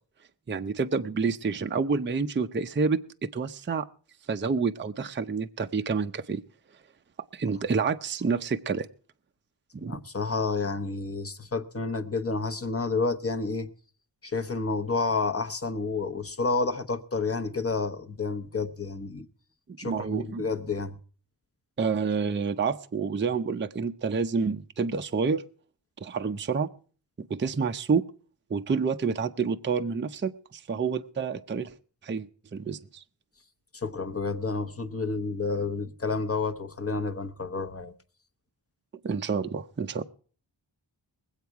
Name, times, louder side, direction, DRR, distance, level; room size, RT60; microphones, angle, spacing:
voice 1, 0.5-3.8 4.3-6.4 7.3-8.9 9.7-10.0 19.7-20.4 21.8-25.4 26.0-26.7 27.2-28.0 28.5-31.7 32.0-33.0 39.0-40.0, right 5 dB, 25° right, 0.5 m, -28 dB
voice 2, 9.9-13.7 14.2-19.3 19.8-21.0 33.7-37.9, left 4 dB, 30° left, 0.9 m, -30 dB
21.5 x 8.1 x 4.6 m
wide cardioid pair, 130°, 47 cm